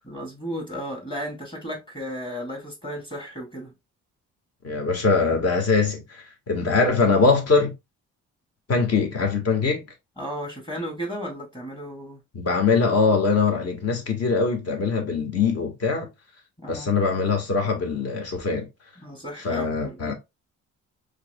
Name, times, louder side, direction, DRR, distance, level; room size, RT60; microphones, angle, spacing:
voice 1, 0.0-3.7 10.2-12.2 16.6-16.9 19.0-20.1, equal, 15° left, 1.8 m, -34 dB
voice 2, 4.6-7.7 8.7-9.8 12.3-16.1 16.7-18.7 19.4-20.1, left 4 dB, 55° left, 1.7 m, -22 dB
4.6 x 3.4 x 2.3 m
cardioid pair, 90°, 30 cm